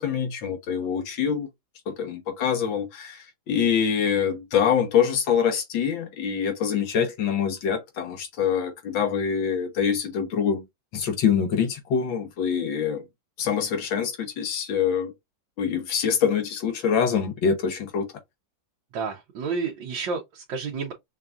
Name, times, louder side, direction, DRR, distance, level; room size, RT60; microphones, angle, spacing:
voice 1, 0.0-1.5 1.9-10.6 10.9-13.0 13.4-15.1 15.6-18.1, left 7 dB, 80° left, 1.8 m, -25 dB
voice 2, 18.9-20.9, right 5 dB, 75° right, 1.5 m, -30 dB
5.6 x 2.4 x 2.5 m
omnidirectional pair, 2.1 m